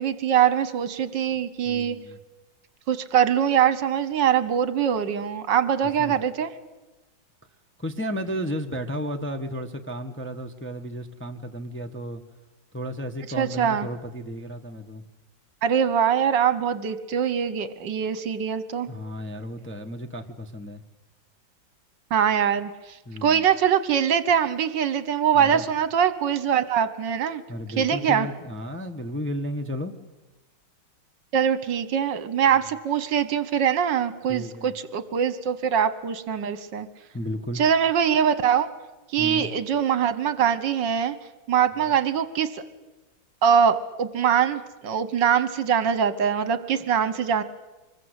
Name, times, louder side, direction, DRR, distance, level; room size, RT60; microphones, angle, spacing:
voice 1, 0.0-2.0 2.9-6.5 13.4-13.9 15.6-18.9 22.1-22.7 23.2-27.4 27.8-28.3 31.3-36.9 37.6-38.7 39.1-41.2 41.5-42.6 43.4-47.4, right 8 dB, 70° right, 14 dB, 1.7 m, -23 dB
voice 2, 1.6-2.2 6.0-6.1 7.8-12.2 12.7-15.0 18.9-20.8 23.1-23.4 25.3-25.7 27.5-29.9 34.3-34.7 37.1-37.6 39.2-39.5, equal, 10° left, 4 dB, 0.9 m, -33 dB
25.0 x 21.0 x 8.1 m, 1.1 s
omnidirectional pair, 2.1 m